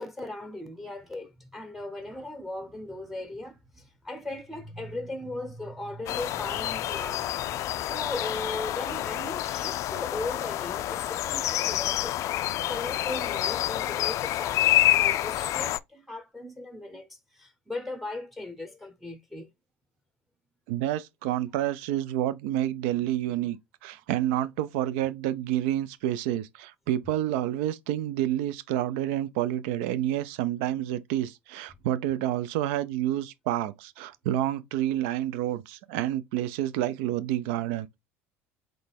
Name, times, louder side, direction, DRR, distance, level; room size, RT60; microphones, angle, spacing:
voice 1, 0.0-12.2 12.7-19.5, left 2 dB, ahead, 0.9 m, -38 dB
sound 1, 6.1-15.8, left 13 dB, 45° left, 0.3 m, -28 dB
voice 2, 20.7-38.0, right 12 dB, 65° right, 0.5 m, -29 dB
3.9 x 3.3 x 3.5 m
hypercardioid pair, 70°, 7 cm